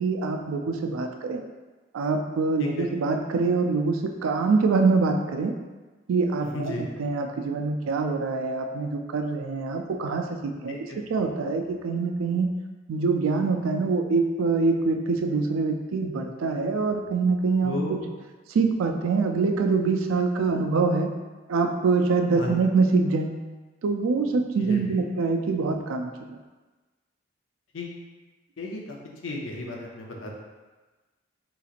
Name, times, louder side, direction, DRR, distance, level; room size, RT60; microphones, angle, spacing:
voice 1, 0.0-1.4 1.9-5.5 6.1-6.7 7.0-10.8 11.1-12.5 12.9-18.0 18.5-21.1 21.5-23.3 23.8-26.4, right 4 dB, 85° right, 4 dB, 0.4 m, -24 dB
voice 2, 2.6-2.9 6.5-6.8 10.7-11.1 17.6-18.1 22.4-22.6 24.6-25.1 27.7-27.9 28.6-29.0 29.2-30.3, left 1 dB, 75° left, -1 dB, 0.6 m, -34 dB
3.8 x 2.9 x 2.4 m, 1.2 s
head